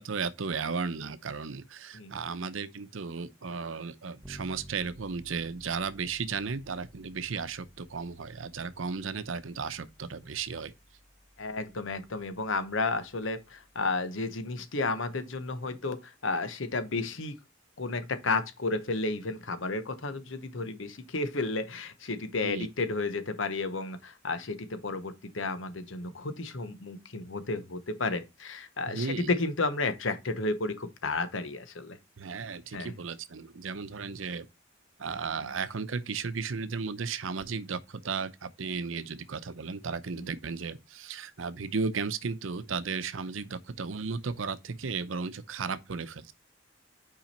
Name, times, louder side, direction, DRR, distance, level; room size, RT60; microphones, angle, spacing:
voice 1, 0.0-10.7 22.4-22.7 28.9-29.3 32.2-34.5 35.0-46.3, right 5 dB, 75° right, 0.7 m, -35 dB
Bass guitar, 4.2-14.0, right 1 dB, 5° left, 1.0 m, -54 dB
voice 2, 11.4-17.4 17.8-32.0 32.7-33.0 35.4-35.5 40.2-40.3, left 3 dB, 70° left, 1.0 m, -32 dB
5.9 x 4.8 x 4.2 m
head